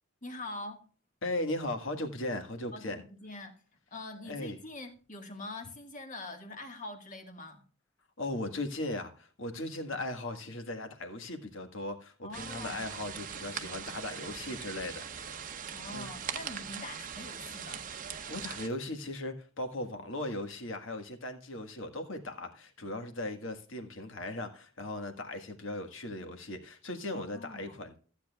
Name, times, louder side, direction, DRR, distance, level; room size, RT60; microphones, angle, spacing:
voice 1, 0.2-0.8 2.7-3.6 3.9-7.6 12.2-12.9 15.7-17.9 27.1-27.8, left 2 dB, 35° left, 1.6 m, -44 dB
voice 2, 1.2-3.0 4.2-4.6 8.2-15.5 15.9-16.1 18.3-28.0, left 1 dB, 60° left, 1.6 m, -38 dB
sound 1, 12.3-18.7, right 7 dB, 40° right, 0.7 m, -41 dB
15.0 x 8.5 x 2.3 m
head